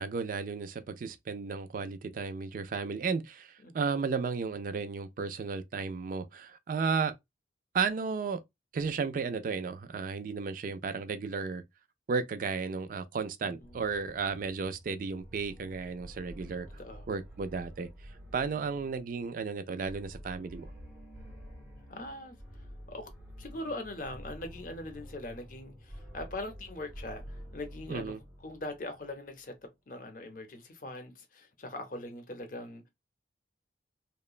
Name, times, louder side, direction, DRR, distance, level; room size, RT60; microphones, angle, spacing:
voice 1, 0.0-7.1 7.7-8.4 8.7-11.6 12.1-16.7 17.1-20.7 27.9-28.2, right 5 dB, 50° right, 0.3 m, -34 dB
voice 2, 13.4-13.9 16.8-17.1 21.9-22.4 22.9-23.1 23.4-28.1 28.4-29.6 29.9-32.9, left 2 dB, 50° left, 0.6 m, -41 dB
sound 1, 13.6-29.3, equal, 10° right, 0.7 m, -49 dB
2.9 x 2.1 x 2.3 m
head